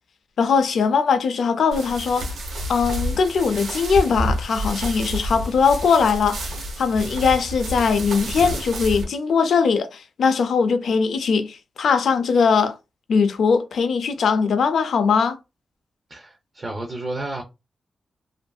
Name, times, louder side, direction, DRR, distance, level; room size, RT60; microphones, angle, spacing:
voice 1, 0.4-2.3 2.7-12.8 13.1-15.4, left 5 dB, 75° left, 0.4 m, -20 dB
sound 1, 1.7-9.0, right 1 dB, 85° right, 0.8 m, -29 dB
voice 2, 16.1-17.4, right 2 dB, 30° right, 0.5 m, -31 dB
2.5 x 2.5 x 2.3 m
wide cardioid pair, 130°, 0 cm